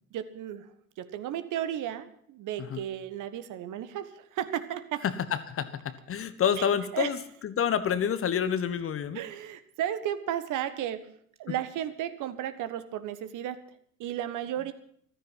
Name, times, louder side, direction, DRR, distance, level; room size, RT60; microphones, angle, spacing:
voice 1, 0.1-0.7 1.0-5.0 6.6-6.7 6.9-7.1 9.1-11.1 11.4-13.6 14.0-14.7, right 11 dB, 45° right, 12 dB, 1.4 m, -34 dB
voice 2, 5.0-7.2 7.4-9.2, left 8 dB, 30° left, 13 dB, 1.2 m, -28 dB
14.5 x 13.5 x 5.8 m, 0.63 s
figure-of-eight pair, 70°, 44 cm